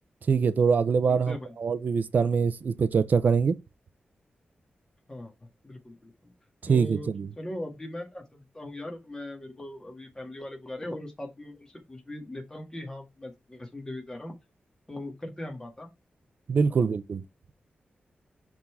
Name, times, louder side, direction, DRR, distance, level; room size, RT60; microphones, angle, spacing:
voice 1, 0.3-3.6 6.6-7.3 16.5-17.2, right 5 dB, 55° right, 0.6 m, -24 dB
voice 2, 1.1-1.5 5.1-5.3 5.6-6.3 6.7-7.1 7.4-14.3 14.9-15.9 16.8-16.9, left 1 dB, 20° left, 1.8 m, -39 dB
5.6 x 3.7 x 4.7 m
wide cardioid pair, 140°, 3 cm